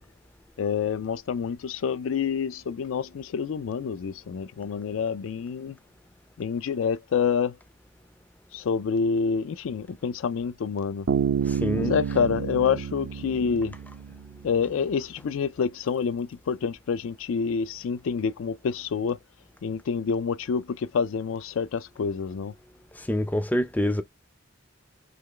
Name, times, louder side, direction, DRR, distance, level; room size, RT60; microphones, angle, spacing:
voice 1, 0.6-5.8 6.4-7.6 8.5-11.1 11.8-13.8 14.4-19.2 19.6-22.5, left 6 dB, 80° left, 0.4 m, -27 dB
Bass guitar, 11.1-14.6, right 7 dB, 80° right, 0.5 m, -29 dB
voice 2, 11.5-11.9 23.0-24.0, left 1 dB, 10° left, 0.3 m, -26 dB
3.4 x 3.0 x 3.7 m
head